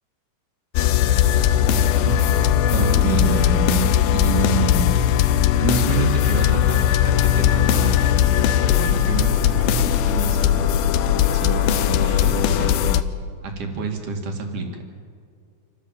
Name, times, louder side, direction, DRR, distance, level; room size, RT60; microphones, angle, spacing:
sound 1, 0.8-13.0, left 10 dB, 80° left, 2.2 m, -19 dB
voice 1, 1.5-4.9 5.6-8.2 8.7-10.7 11.3-13.1 13.4-14.8, right 4 dB, 55° right, 3 dB, 3.4 m, -27 dB
27.0 x 15.0 x 7.3 m, 2.2 s
omnidirectional pair, 4.8 m